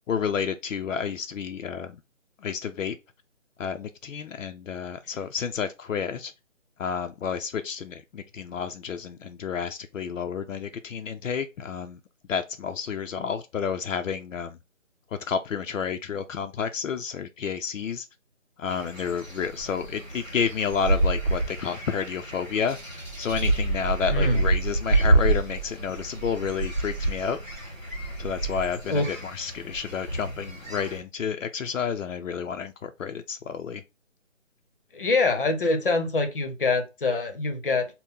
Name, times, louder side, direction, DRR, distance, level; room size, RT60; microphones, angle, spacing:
voice 1, 0.1-2.0 2.4-3.0 3.6-6.3 6.8-12.0 12.3-14.6 15.3-18.1 18.6-22.8 23.2-27.4 28.2-33.8, left 7 dB, 75° left, 0.5 m, -30 dB
sound 1, 18.7-31.0, right 2 dB, 10° left, 1.0 m, -28 dB
voice 2, 24.1-24.4 28.9-29.1 34.9-37.9, left 3 dB, 45° left, 0.7 m, -24 dB
3.8 x 2.1 x 3.9 m
figure-of-eight pair, 170°, 39 cm